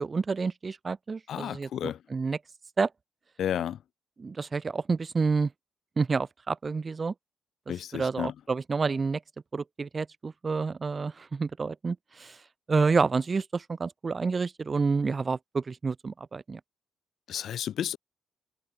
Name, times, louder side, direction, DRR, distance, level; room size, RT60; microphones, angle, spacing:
voice 1, 0.0-2.4 2.8-2.9 4.2-5.5 6.0-7.1 7.7-9.2 9.5-12.4 12.7-16.6, right 4 dB, 40° right, 1.0 m, -29 dB
voice 2, 1.3-2.0 3.4-3.8 7.7-8.3 17.3-18.0, left 10 dB, 65° left, 0.5 m, -32 dB
hypercardioid pair, 45°, 0 cm